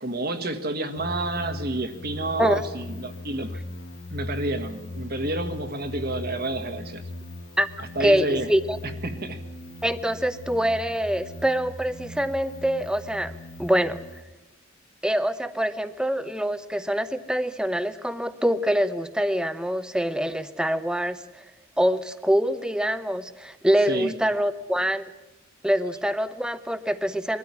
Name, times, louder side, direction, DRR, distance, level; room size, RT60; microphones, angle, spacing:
voice 1, 0.0-3.6 4.1-7.0 7.8-8.5 8.8-9.4 23.9-24.1, right 2 dB, 50° right, 7 dB, 1.7 m, -30 dB
sound 1, 1.0-14.2, left 1 dB, 70° left, 2.0 m, -38 dB
voice 2, 8.0-8.8 9.8-14.0 15.0-21.2 21.8-25.1 25.6-27.4, equal, 5° right, 12 dB, 0.8 m, -25 dB
22.5 x 13.5 x 9.8 m, 1.1 s
head